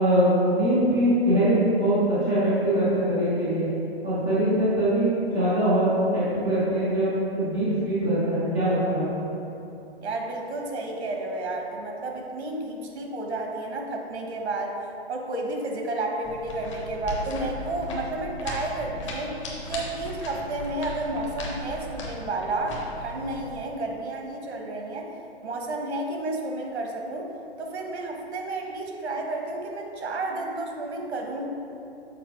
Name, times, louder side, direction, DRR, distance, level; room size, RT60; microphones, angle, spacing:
voice 1, 0.0-3.7 4.0-9.0, right 1 dB, 5° left, -15 dB, 0.3 m, -22 dB
voice 2, 10.0-14.8 15.1-19.3 19.7-25.1 25.4-27.3 27.6-31.4, right 2 dB, 75° right, 1 dB, 1.3 m, -31 dB
sound 1, 16.2-23.6, left 1 dB, 30° left, 0.8 m, -37 dB
6.7 x 4.2 x 4.5 m, 2.8 s
hypercardioid pair, 165°, 33 cm